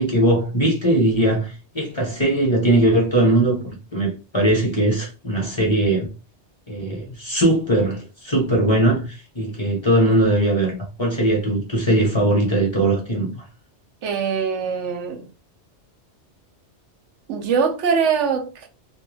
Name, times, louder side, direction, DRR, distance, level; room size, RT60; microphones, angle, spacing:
voice 1, 0.0-6.1 6.7-13.4, right 1 dB, 25° left, 0.8 m, -20 dB
voice 2, 14.0-15.3 17.3-18.7, right 6 dB, 80° right, 0.9 m, -22 dB
2.2 x 2.2 x 3.1 m
omnidirectional pair, 1.2 m